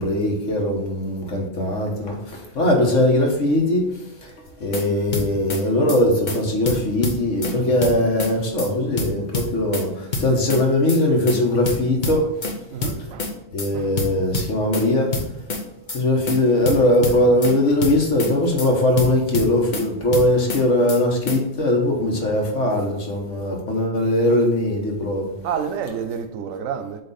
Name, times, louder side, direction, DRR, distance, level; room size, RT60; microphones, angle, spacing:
voice 1, 0.0-4.3 4.6-12.3 13.5-15.1 15.9-25.3, left 1 dB, 70° left, 1.6 m, -20 dB
sound 1, 4.5-4.8 5.1-5.6 5.9-6.0 6.3-6.4 6.7-7.5 7.8-8.3 8.6-8.7 9.0-9.9 10.1-10.6 10.9-11.0 11.3-11.4 11.7-12.5 12.8-13.3 13.6-13.7 14.0-14.8 15.1-15.6 15.9-16.0 16.3-16.4 16.7-17.5 17.8-18.3 18.6-18.7 19.0-19.8 20.1-20.6 20.9-21.0 21.3-21.4, left 3 dB, 40° left, 1.0 m, -26 dB
voice 2, 12.7-13.3 13.7-13.9 25.4-27.0, right 7 dB, 90° right, 1.1 m, -29 dB
7.9 x 3.0 x 4.1 m
omnidirectional pair, 1.3 m